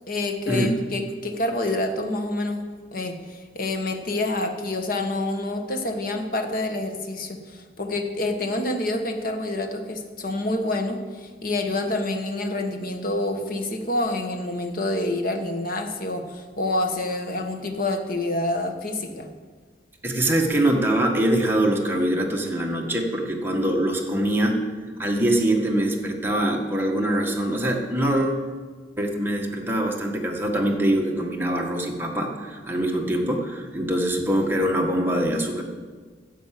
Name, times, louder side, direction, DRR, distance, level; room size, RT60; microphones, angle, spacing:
voice 1, 0.1-2.6 2.9-19.3, left 2 dB, 55° left, 5 dB, 1.3 m, -27 dB
voice 2, 20.0-24.6 25.0-28.4 29.0-35.6, right 1 dB, 10° right, 0 dB, 1.5 m, -23 dB
10.5 x 8.1 x 7.5 m, 1.5 s
head